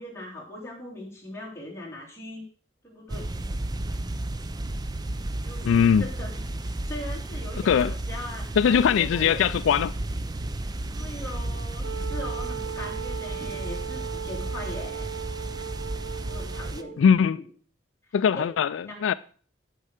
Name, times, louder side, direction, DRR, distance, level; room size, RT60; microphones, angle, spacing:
voice 1, 0.0-2.4 2.8-3.3 5.4-9.6 11.0-15.2 16.2-17.0 17.3-17.4 18.0-18.5 18.9-19.1, left 1 dB, 15° left, 3.3 m, -40 dB
sound 1, 3.1-16.8, right 1 dB, 20° right, 0.5 m, -33 dB
voice 2, 5.7-6.0 7.7-7.9 8.6-9.9 17.0-17.4 18.1-19.1, left 7 dB, 75° left, 0.3 m, -21 dB
Wind instrument woodwind instrument, 11.8-17.0, right 9 dB, 85° right, 0.9 m, -37 dB
9.9 x 5.4 x 6.5 m
head